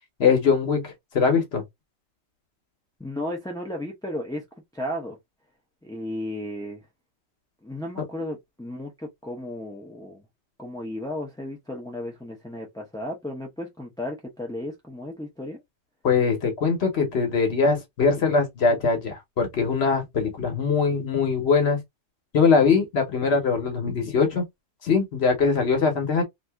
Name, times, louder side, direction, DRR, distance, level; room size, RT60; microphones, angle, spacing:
voice 1, 0.2-1.6 16.0-21.8 22.3-24.4 24.8-26.2, left 5 dB, 75° left, 1.2 m, -22 dB
voice 2, 3.0-4.4 4.7-5.2 5.8-6.8 7.6-10.2 10.6-15.6, left 1 dB, 5° left, 0.6 m, -34 dB
2.7 x 2.6 x 3.3 m
omnidirectional pair, 1.1 m